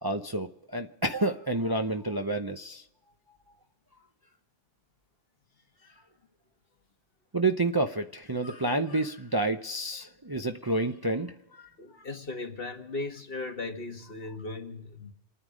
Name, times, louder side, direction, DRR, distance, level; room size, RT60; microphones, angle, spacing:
voice 1, 0.0-2.9 7.3-11.7 12.0-12.1, right 2 dB, 25° right, 0.7 m, -29 dB
voice 2, 11.8-15.1, left 3 dB, 55° left, 1.8 m, -37 dB
28.5 x 9.8 x 5.1 m
omnidirectional pair, 1.2 m